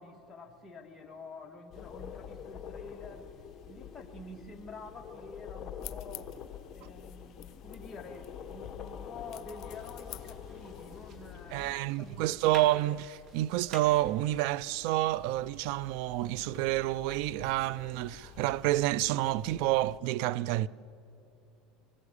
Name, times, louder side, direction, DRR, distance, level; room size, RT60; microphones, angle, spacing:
voice 1, 0.0-3.3 3.7-6.3 6.7-12.7, left 3 dB, 15° left, 2.2 m, -48 dB
sound 1, 1.7-20.0, left 8 dB, 35° left, 1.4 m, -47 dB
sound 2, 5.8-11.3, left 14 dB, 50° left, 1.0 m, -51 dB
sound 3, 9.7-14.9, right 3 dB, 40° right, 2.7 m, -52 dB
voice 2, 11.5-20.7, right 16 dB, 70° right, 0.5 m, -29 dB
24.5 x 20.0 x 8.4 m
supercardioid pair, 125°, 0 cm